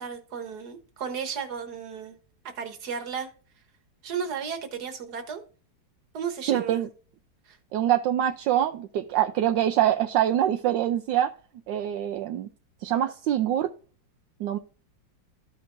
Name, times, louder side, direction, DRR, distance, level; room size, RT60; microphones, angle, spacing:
voice 1, 0.0-2.2 2.6-3.3 4.0-5.4 6.1-6.8 7.5-7.6, right 6 dB, 60° right, 1.7 m, -34 dB
voice 2, 6.5-6.9 7.7-11.3 11.7-12.5 12.8-13.7 14.4-14.6, right 11 dB, 80° right, 1.2 m, -24 dB
14.0 x 5.2 x 2.5 m
omnidirectional pair, 2.0 m